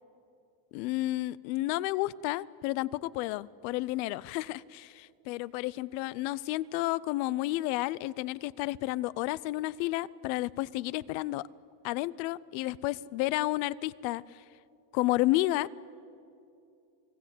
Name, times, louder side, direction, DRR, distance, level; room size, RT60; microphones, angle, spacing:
voice 1, 0.7-11.4 11.8-14.4 14.9-15.7, left 17 dB, 90° left, 20 dB, 0.8 m, -31 dB
30.0 x 19.5 x 8.5 m, 2.6 s
cardioid pair, 150°, 50 cm